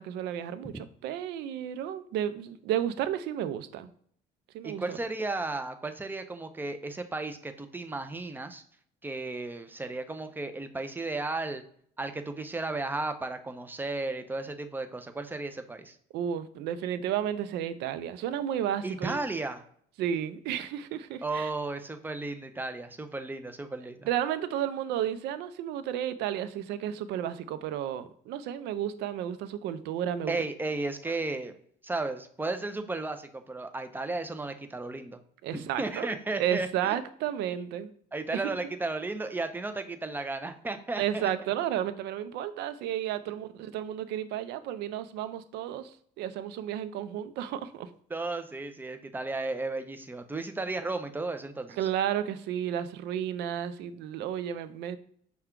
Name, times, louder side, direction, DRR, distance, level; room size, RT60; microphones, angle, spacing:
voice 1, 0.0-3.9 4.5-5.0 16.1-19.2 20.0-21.5 24.0-30.4 31.1-31.2 35.4-36.1 36.4-37.9 38.3-38.6 41.0-47.9 51.8-55.0, right 10 dB, 85° right, 13 dB, 0.4 m, -32 dB
voice 2, 4.6-8.6 9.0-11.6 12.0-15.9 18.8-19.6 21.2-24.0 30.3-31.5 31.8-35.2 35.5-37.0 38.1-41.3 48.1-51.8, right 2 dB, 10° right, 8 dB, 0.5 m, -34 dB
5.6 x 2.2 x 3.7 m, 0.62 s
cardioid pair, 110°, 17 cm